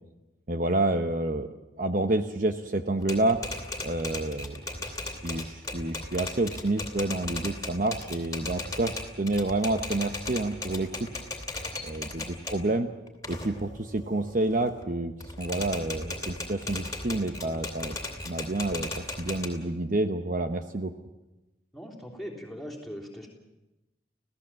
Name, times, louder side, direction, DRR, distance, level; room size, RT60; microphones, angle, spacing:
voice 1, 0.5-1.5 1.8-3.4 3.8-5.0 5.2-11.1 11.8-12.9 13.3-18.0 18.3-20.9, right 2 dB, 45° right, 8 dB, 0.8 m, -29 dB
Typewriter, 3.0-12.6 13.1-14.8 15.2-19.5, left 2 dB, 15° left, 2.9 m, -37 dB
voice 2, 21.7-23.3, equal, ahead, -1 dB, 3.4 m, -40 dB
27.0 x 16.5 x 7.5 m, 1.0 s
head